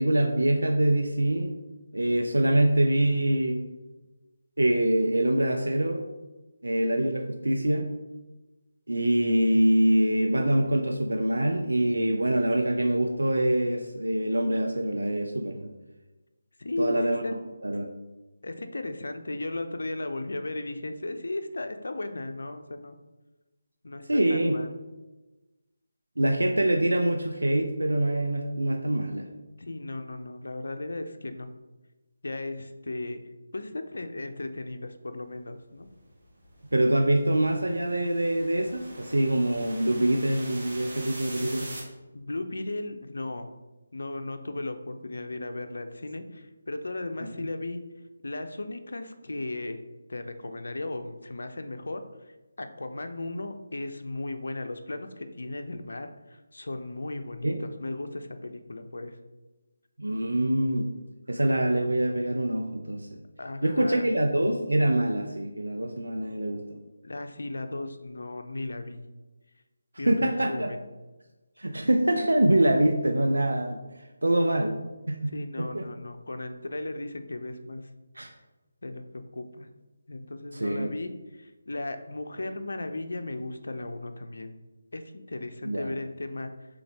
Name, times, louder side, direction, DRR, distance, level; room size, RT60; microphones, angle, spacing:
voice 1, 0.0-1.5 1.9-3.6 4.6-6.0 6.6-7.9 8.9-15.7 16.8-17.2 17.6-17.9 24.1-24.5 26.2-29.3 36.7-41.7 47.2-47.3 57.4-57.6 60.0-60.9 61.3-63.1 63.6-66.8 70.1-70.7 71.6-73.8 74.2-74.8 75.1-75.9 78.2-78.3 80.5-80.9 85.6-85.9, right 1 dB, 85° right, 4 dB, 0.4 m, -25 dB
voice 2, 16.6-17.0 17.2-17.3 18.4-23.0 23.8-24.7 29.6-31.5 32.2-33.2 33.5-35.9 42.1-43.5 43.9-47.8 48.2-49.8 50.1-52.0 52.6-59.2 63.4-64.0 67.0-69.0 70.0-70.8 75.3-77.9 78.8-79.7 80.1-84.5 84.9-86.5, left 2 dB, 70° left, 7 dB, 0.4 m, -36 dB
sound 1, 35.8-41.8, right 1 dB, 45° right, 1.5 m, -44 dB
3.8 x 3.5 x 3.4 m, 1.1 s
figure-of-eight pair, 155°, 0 cm